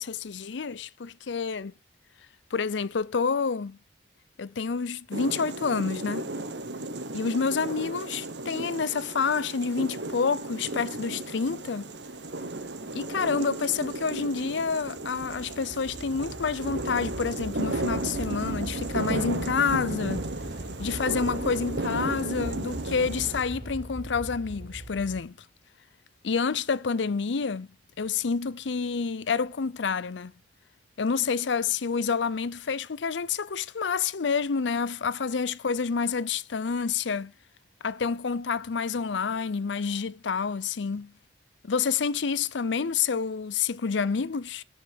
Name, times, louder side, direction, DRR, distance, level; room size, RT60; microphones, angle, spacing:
voice 1, 0.0-1.7 2.5-3.8 4.4-6.3 7.1-11.9 12.9-20.3 20.8-25.3 26.2-27.7 28.0-30.3 31.0-37.3 37.8-41.1 41.6-44.6, left 5 dB, 80° left, 0.6 m, -28 dB
sound 1, 5.1-23.4, right 2 dB, 70° right, 1.1 m, -34 dB
Train / Subway metro underground, 12.1-12.4 12.6-25.2, right 1 dB, 45° right, 5.1 m, -40 dB
17.0 x 5.7 x 3.6 m
head